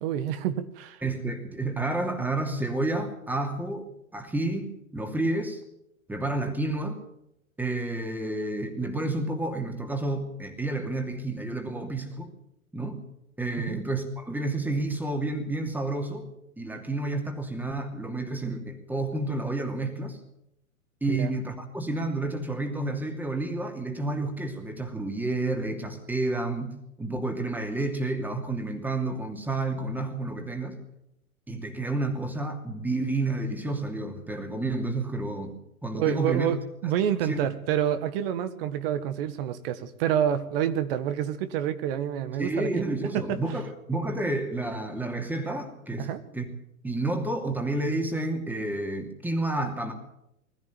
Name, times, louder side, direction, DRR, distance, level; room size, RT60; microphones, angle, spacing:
voice 1, 0.0-1.0 13.6-13.8 21.1-21.3 36.0-36.6 36.8-42.8 46.0-46.2, right 10 dB, 40° right, 12 dB, 1.7 m, -28 dB
voice 2, 1.0-3.9 4.1-5.6 6.1-7.0 7.6-12.3 12.7-13.0 13.4-16.3 16.6-20.2 21.0-30.8 31.5-35.6 35.8-36.5 37.2-37.4 42.4-46.1 46.3-46.4 46.8-49.9, right 2 dB, 5° right, 5 dB, 2.7 m, -30 dB
21.0 x 14.0 x 9.2 m, 0.81 s
figure-of-eight pair, 115°, 43 cm